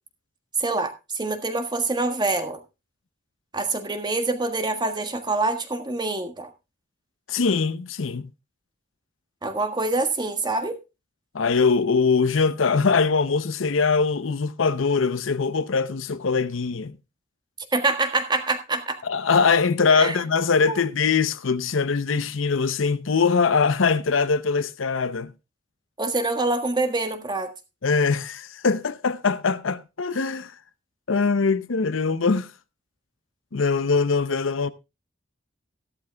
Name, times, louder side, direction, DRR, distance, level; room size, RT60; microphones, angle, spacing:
voice 1, 0.6-2.6 3.5-6.5 9.4-10.8 17.7-19.0 19.9-20.1 20.7-20.8 26.0-27.5, right 3 dB, 25° right, 1.5 m, -25 dB
voice 2, 7.3-8.3 11.3-17.0 19.0-25.3 27.8-30.5 31.1-32.5 33.5-34.7, left 5 dB, 85° left, 0.7 m, -22 dB
14.5 x 12.5 x 2.3 m
head